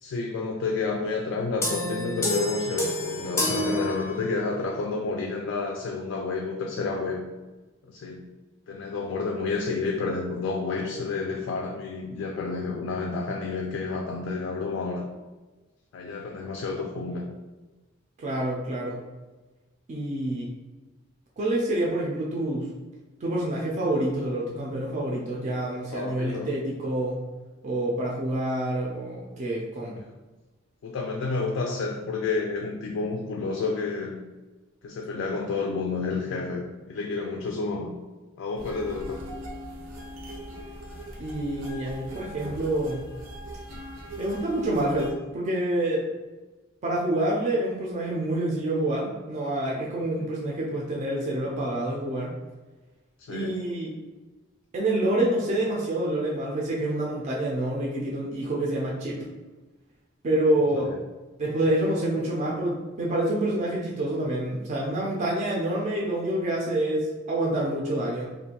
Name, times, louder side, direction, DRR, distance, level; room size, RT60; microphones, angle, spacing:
voice 1, 0.0-7.2 7.9-8.2 8.7-15.0 15.9-17.2 25.9-26.5 30.8-34.1 34.8-37.9 38.4-39.2 50.1-50.3 53.2-53.5 60.7-61.0, left 4 dB, 70° left, 1 dB, 0.3 m, -30 dB
sound 1, 1.6-4.6, left 1 dB, 15° left, 0.5 m, -28 dB
voice 2, 18.2-19.0 19.9-20.5 21.4-22.7 23.2-27.2 27.6-30.0 41.2-43.0 44.2-46.0 46.8-52.3 53.3-53.9 54.7-59.3 60.2-60.9 61.4-68.3, right 1 dB, 35° right, -3 dB, 0.4 m, -27 dB
sound 2, 38.6-45.1, right 1 dB, 80° right, 0.6 m, -40 dB
2.5 x 2.2 x 2.8 m, 1.2 s
head